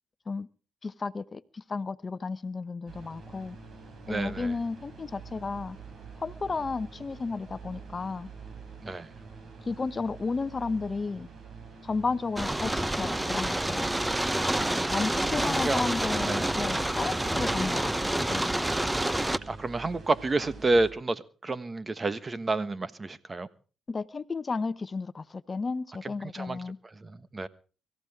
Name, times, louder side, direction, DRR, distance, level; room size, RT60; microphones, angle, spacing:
voice 1, 0.8-3.6 4.1-5.8 6.2-8.3 9.7-11.3 11.8-13.9 14.9-18.6 23.9-26.8, left 4 dB, 35° left, 0.8 m, -33 dB
sound 1, 2.9-20.9, right 5 dB, 55° right, 4.2 m, -46 dB
voice 2, 4.1-4.5 8.8-9.1 14.5-15.0 15.4-15.8 16.2-16.5 19.5-23.5 26.0-26.6 26.9-27.5, right 2 dB, 30° right, 1.3 m, -30 dB
sound 2, 12.4-19.4, right 1 dB, 10° right, 0.9 m, -28 dB
24.0 x 14.5 x 3.6 m
supercardioid pair, 55°, 0 cm